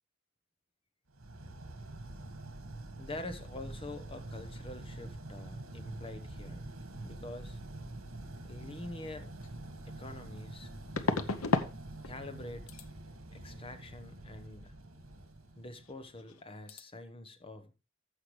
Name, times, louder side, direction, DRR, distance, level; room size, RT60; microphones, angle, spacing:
sound 1, 1.1-16.2, right 2 dB, 85° right, 1.8 m, -46 dB
voice 1, 3.0-6.7 7.0-7.6 8.4-9.3 9.9-10.7 12.0-12.7 13.3-14.7 15.6-17.7, left 2 dB, 25° left, 1.0 m, -45 dB
sound 2, 9.4-9.5 11.0-11.7 12.0-12.4 12.7-12.9 15.8-15.9 16.2-16.4 16.7-16.8, left 3 dB, 90° left, 0.9 m, -32 dB
14.5 x 5.8 x 3.2 m
head